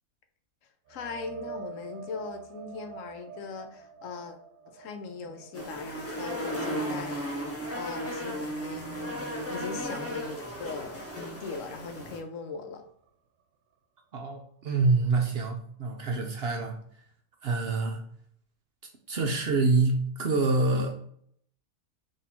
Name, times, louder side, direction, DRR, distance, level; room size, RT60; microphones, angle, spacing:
voice 1, 0.9-4.4 4.7-9.2 9.5-12.8, left 4 dB, 75° left, 7 dB, 0.9 m, -40 dB
sound 1, 0.9-8.3 8.6-12.5 12.9-13.1 16.4-16.5, right 5 dB, 80° right, 1.0 m, -48 dB
sound 2, 5.5-12.2, equal, 15° left, 0.6 m, -35 dB
voice 2, 14.1-16.8 17.4-18.0 19.1-21.0, right 3 dB, 60° right, 3 dB, 0.7 m, -26 dB
4.1 x 2.8 x 4.2 m, 0.64 s
omnidirectional pair, 1.4 m